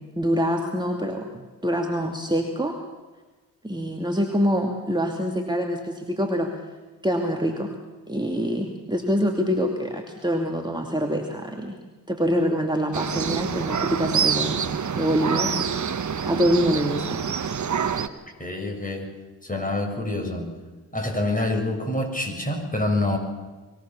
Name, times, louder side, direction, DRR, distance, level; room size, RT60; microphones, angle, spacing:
voice 1, 0.0-2.8 3.6-6.6 7.0-7.7 8.1-11.8 12.1-14.6 15.0-15.7 16.2-17.3, equal, 10° right, 2 dB, 2.5 m, -25 dB
sound 1, 12.9-18.1, right 7 dB, 45° right, 1.3 m, -26 dB
voice 2, 18.4-19.1 19.4-20.5 20.9-23.2, left 2 dB, 20° left, 3 dB, 6.6 m, -26 dB
23.0 x 17.5 x 7.1 m, 1.2 s
hypercardioid pair, 40°, 42 cm